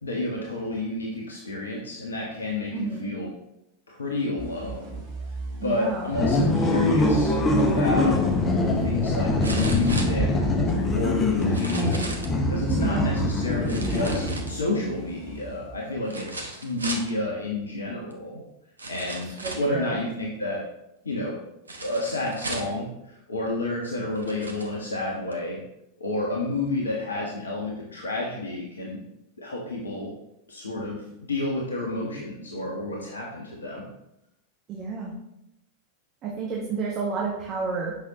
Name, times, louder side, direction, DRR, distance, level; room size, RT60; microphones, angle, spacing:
voice 1, 0.0-3.3 3.9-5.0 5.6-8.3 8.8-10.3 10.9-12.0 12.5-18.4 18.9-20.6 21.0-21.4 21.8-25.6 26.0-29.0 29.4-30.1 30.5-33.8, left 2 dB, 75° left, -2 dB, 1.2 m, -30 dB
voice 2, 2.7-3.1 5.6-6.1 12.7-13.1 19.4-20.0 34.7-35.1 36.2-38.0, right 4 dB, 30° right, -3 dB, 1.4 m, -30 dB
sound 1, 4.4-16.2, right 3 dB, 55° right, 1.9 m, -37 dB
sound 2, 6.1-14.7, left 2 dB, 20° left, 1.1 m, -23 dB
sound 3, 8.0-8.1 9.4-10.7 11.4-12.4 13.7-14.8 16.1-17.1 18.1-18.2 18.8-19.8 21.7-22.8 23.6-23.7 24.1-24.7 25.3-25.4, right 2 dB, 80° right, 0.9 m, -36 dB
8.3 x 6.0 x 2.9 m, 0.85 s
figure-of-eight pair, 90°, 0 cm